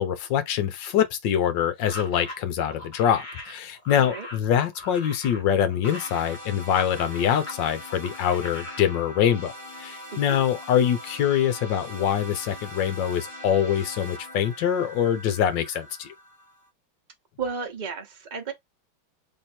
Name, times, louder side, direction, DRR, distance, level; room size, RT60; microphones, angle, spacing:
voice 1, 0.0-9.5 9.8-16.1, left 9 dB, 65° left, 1.3 m, -24 dB
sound 1, 1.8-7.6 7.9-8.8, left 2 dB, 30° left, 0.9 m, -40 dB
voice 2, 4.0-4.3 10.1-10.4 17.4-18.5, right 5 dB, 75° right, 0.4 m, -33 dB
sound 2, 5.8-16.7, left 1 dB, 15° left, 1.3 m, -42 dB
3.6 x 3.3 x 4.3 m
omnidirectional pair, 2.4 m